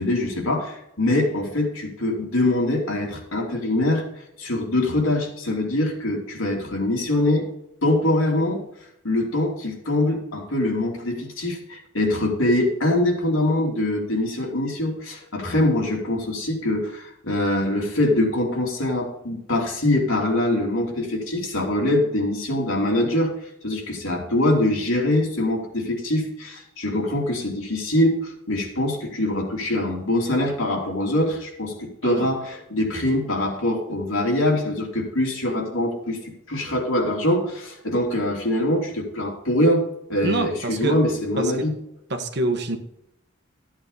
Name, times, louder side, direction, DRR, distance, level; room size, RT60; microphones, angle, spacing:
voice 1, 0.0-4.0 4.4-7.5 7.8-8.6 9.0-23.3 23.6-39.8 40.1-41.8, left 1 dB, 90° left, 0 dB, 3.1 m, -23 dB
voice 2, 40.2-41.0 41.4-41.5 42.1-42.8, right 2 dB, 55° right, 6 dB, 1.4 m, -26 dB
13.5 x 8.7 x 4.1 m, 0.81 s
head